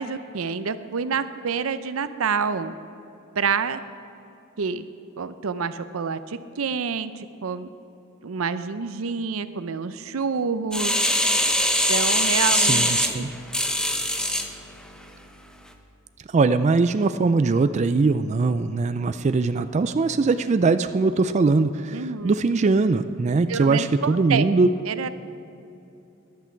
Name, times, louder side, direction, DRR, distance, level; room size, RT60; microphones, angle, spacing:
voice 1, 0.0-2.8 3.3-3.8 4.6-4.9 5.2-7.7 8.2-11.0 11.9-13.3 21.9-22.4 23.5-24.5 24.9-25.1, right 5 dB, 85° right, 12 dB, 0.6 m, -28 dB
sound 1, 10.7-14.5 15.0-15.1, left 1 dB, 5° left, 0.7 m, -22 dB
voice 2, 12.5-13.3 16.3-24.7, right 3 dB, 35° right, 11 dB, 0.3 m, -21 dB
14.5 x 10.5 x 4.5 m, 2.8 s
head